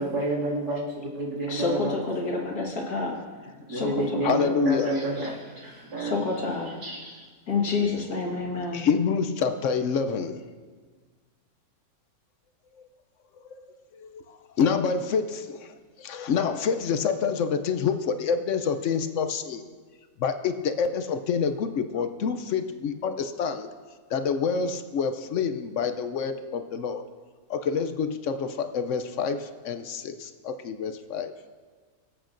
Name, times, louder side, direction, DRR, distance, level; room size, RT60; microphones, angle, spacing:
voice 1, 0.0-1.9 3.7-6.2 6.8-7.3, right 2 dB, 85° right, -5 dB, 2.8 m, -30 dB
voice 2, 1.5-4.0 4.3-4.5 6.0-6.8 7.5-8.9, left 4 dB, 85° left, 0 dB, 2.2 m, -29 dB
voice 3, 4.2-4.9 8.7-10.4 14.0-19.6 20.2-23.7 24.1-27.0 27.5-31.3, left 6 dB, 65° left, 9 dB, 0.8 m, -27 dB
24.5 x 8.2 x 2.6 m, 1.5 s
omnidirectional pair, 1.6 m